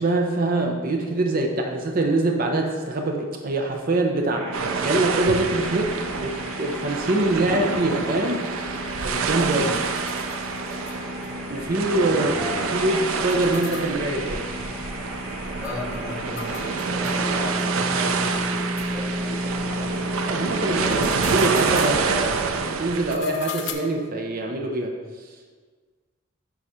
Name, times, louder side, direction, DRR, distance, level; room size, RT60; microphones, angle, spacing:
voice 1, 0.0-8.4 9.0-9.7 11.5-12.3 12.7-14.5 20.2-21.0 21.3-25.0, right 2 dB, 45° right, 2 dB, 0.7 m, -24 dB
sound 1, 4.3-21.3, equal, 60° right, 1.4 m, -33 dB
sound 2, 4.5-23.2, right 5 dB, 85° right, 0.5 m, -28 dB
sound 3, 8.0-11.3 11.6-11.7 12.0-12.1 13.2-17.2 17.6-17.7 18.2-18.3 18.8-18.9 20.6-22.0 22.9-23.7, left 7 dB, 60° left, 0.7 m, -40 dB
voice 2, 12.1-12.8 15.6-20.0 20.8-21.7, left 1 dB, 10° right, -9 dB, 1.8 m, -36 dB
9.6 x 3.9 x 4.3 m, 1.5 s
head